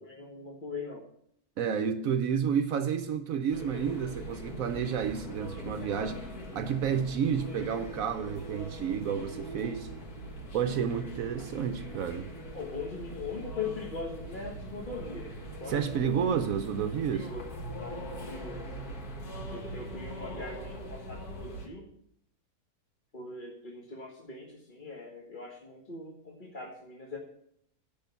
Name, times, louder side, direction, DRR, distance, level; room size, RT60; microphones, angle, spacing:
voice 1, 0.0-1.0 12.5-15.3 15.6-16.2 17.1-17.4 17.7-18.7 19.5-21.9 23.1-27.2, left 4 dB, 35° left, 1.5 m, -41 dB
voice 2, 1.6-9.9 10.5-12.3 15.7-17.3, right 7 dB, 70° right, 1.0 m, -30 dB
sound 1, 3.5-21.7, equal, 75° left, 2.2 m, -41 dB
12.5 x 5.7 x 6.9 m
omnidirectional pair, 1.6 m